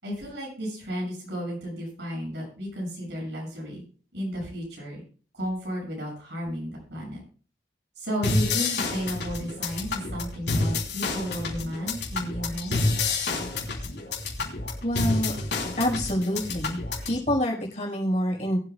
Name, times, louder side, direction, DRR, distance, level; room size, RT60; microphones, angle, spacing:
voice 1, 0.0-3.8 4.1-5.0 5.3-7.2 8.0-12.9, equal, 80° right, -1 dB, 6.8 m, -33 dB
sound 1, 8.2-17.2, left 3 dB, 80° left, 3.2 m, -29 dB
voice 2, 14.8-15.3 15.8-16.8 17.1-18.6, equal, 40° left, -2 dB, 4.9 m, -26 dB
22.5 x 8.2 x 2.3 m, 0.40 s
head